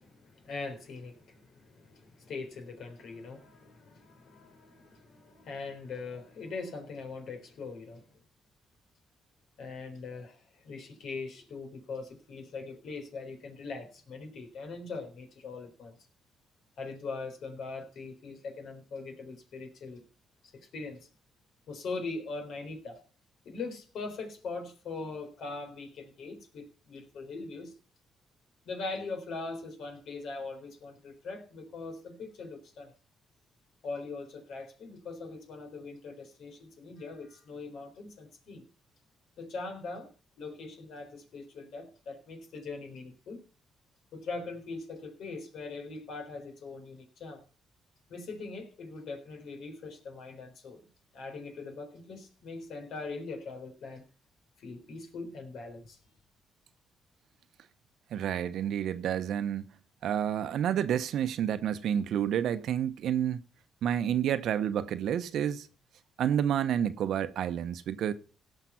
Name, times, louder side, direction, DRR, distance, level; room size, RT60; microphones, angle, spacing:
voice 1, 0.0-8.0 9.6-15.9 16.8-20.0 20.5-21.0 21.7-23.0 23.4-27.7 28.7-32.9 33.8-38.6 39.4-40.1 40.4-43.4 44.1-47.4 48.1-50.9 51.1-54.0 54.6-56.0, left 3 dB, 70° left, 4.0 m, -41 dB
voice 2, 58.1-59.7 60.0-63.4 63.8-65.7 66.2-68.1, right 9 dB, 75° right, 0.9 m, -29 dB
17.0 x 5.9 x 5.8 m
cardioid pair, 90°, 0 cm